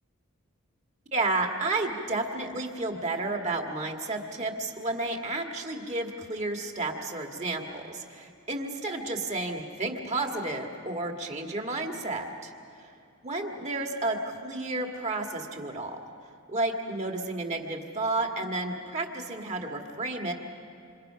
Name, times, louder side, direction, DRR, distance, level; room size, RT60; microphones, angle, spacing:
voice 1, 1.1-12.9 13.2-16.0 16.5-20.3, right 2 dB, 35° right, 2 dB, 2.0 m, -31 dB
27.0 x 27.0 x 5.8 m, 2.6 s
head